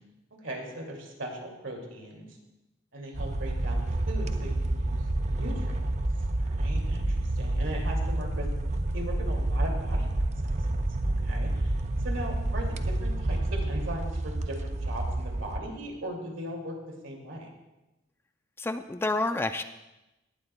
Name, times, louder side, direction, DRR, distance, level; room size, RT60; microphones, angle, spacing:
voice 1, 0.4-2.4 2.9-5.8 6.4-8.5 8.9-10.5 11.0-11.7 12.0-17.5, right 1 dB, 80° right, 1 dB, 2.3 m, -39 dB
sound 1, 3.1-15.6, right 1 dB, 35° right, 0.5 m, -29 dB
voice 2, 18.6-19.6, left 2 dB, 10° left, 9 dB, 0.3 m, -29 dB
18.0 x 12.0 x 2.2 m, 0.99 s
head